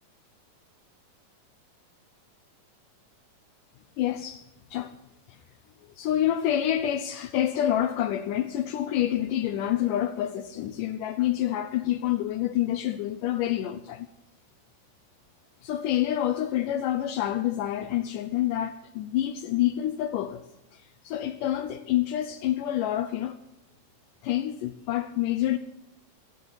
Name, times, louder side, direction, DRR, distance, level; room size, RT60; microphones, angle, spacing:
voice 1, 4.0-4.5 4.7-5.0 5.3-5.4 6.0-14.1 15.6-23.4 24.2-25.6, left 12 dB, 75° left, 2.3 m, -27 dB
18.0 x 17.5 x 4.1 m
omnidirectional pair, 3.9 m